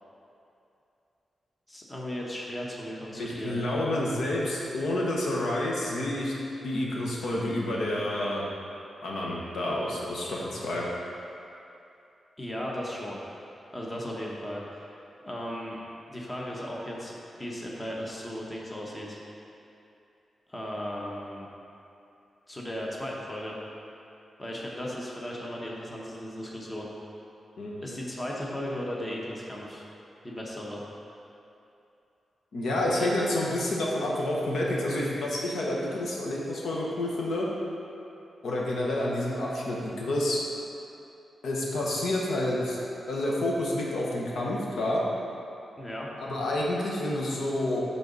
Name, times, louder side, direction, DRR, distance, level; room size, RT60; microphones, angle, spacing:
voice 1, 1.7-3.6 12.4-13.2 13.7-15.0 15.2-15.8 16.1-19.2 20.5-21.5 22.5-23.5 24.4-26.9 27.8-29.8 30.2-30.8 32.8-33.1 45.8-46.1, equal, 20° left, -3 dB, 1.0 m, -36 dB
voice 2, 3.1-6.3 6.6-8.4 9.0-10.8 27.6-27.7 32.5-37.5 38.4-40.4 41.4-42.8 43.1-45.0 46.2-47.8, left 1 dB, 85° left, -4 dB, 1.1 m, -29 dB
10.5 x 3.9 x 4.0 m, 2.7 s
wide cardioid pair, 110°, 0 cm